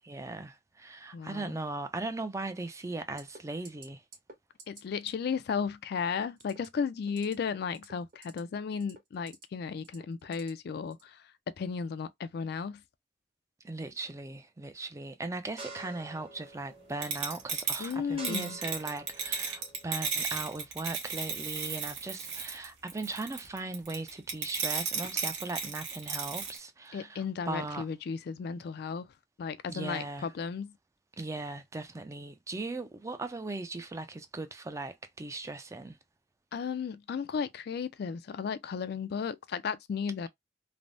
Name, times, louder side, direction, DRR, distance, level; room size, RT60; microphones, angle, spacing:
voice 1, 0.0-4.0 13.6-27.9 29.7-30.3 31.2-36.0, right 2 dB, 15° right, 0.4 m, -38 dB
voice 2, 1.1-1.6 4.7-11.3 11.6-12.8 17.8-18.6 26.9-29.1 29.4-30.7 36.5-40.3, left 6 dB, 60° left, 0.3 m, -34 dB
sound 1, 3.2-3.4 3.7-3.9 4.1-4.3 4.6-4.8 5.1-5.2 6.4-6.7 7.0-7.3 7.7-8.4 8.8-9.4 9.8-10.5 10.9-11.1, right 3 dB, 50° right, 1.3 m, -50 dB
sound 2, 15.6-20.7, right 2 dB, 35° right, 0.9 m, -49 dB
sound 3, 17.0-26.6, right 5 dB, 75° right, 1.0 m, -34 dB
3.3 x 2.0 x 2.5 m
head